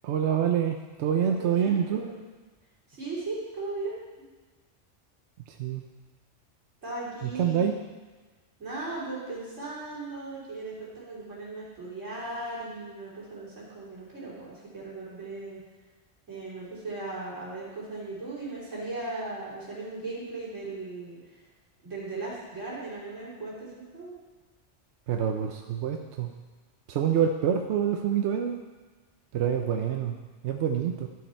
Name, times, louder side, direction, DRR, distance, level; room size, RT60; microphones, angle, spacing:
voice 1, 0.0-2.0 5.6-5.8 7.2-7.8 25.1-26.3 26.9-28.6 29.3-30.1 30.4-31.1, right 8 dB, 75° right, 4 dB, 0.9 m, -26 dB
voice 2, 1.2-2.2 2.9-4.3 6.8-7.7 8.6-15.6 16.3-21.4 21.8-24.2, right 2 dB, 90° right, -8 dB, 3.3 m, -37 dB
12.0 x 4.8 x 4.3 m, 1.3 s
omnidirectional pair, 1.2 m